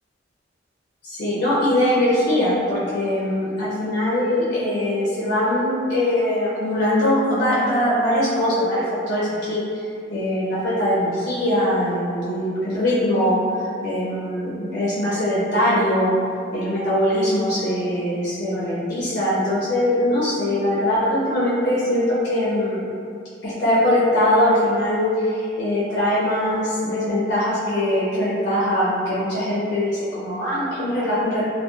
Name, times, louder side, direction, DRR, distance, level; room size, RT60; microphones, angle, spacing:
voice 1, 1.0-9.6 10.1-13.4 13.8-16.2 16.5-22.8 23.4-31.5, left 1 dB, 55° left, -9 dB, 0.5 m, -21 dB
2.9 x 2.2 x 2.2 m, 2.4 s
head